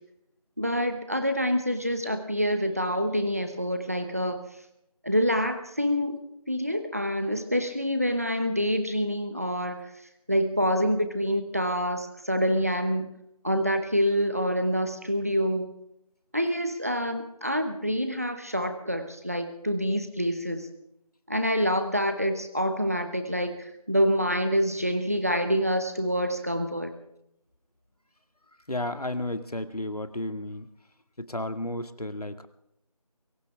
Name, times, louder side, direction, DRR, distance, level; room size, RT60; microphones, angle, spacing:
voice 1, 0.6-4.4 5.0-6.2 6.5-9.9 10.3-13.1 13.4-15.7 16.3-20.7 21.3-26.9, equal, 25° right, 8 dB, 1.0 m, -26 dB
voice 2, 28.7-30.7 31.2-32.5, left 1 dB, 75° left, 9 dB, 2.0 m, -32 dB
24.0 x 16.0 x 3.5 m, 0.78 s
figure-of-eight pair, 175°, 20 cm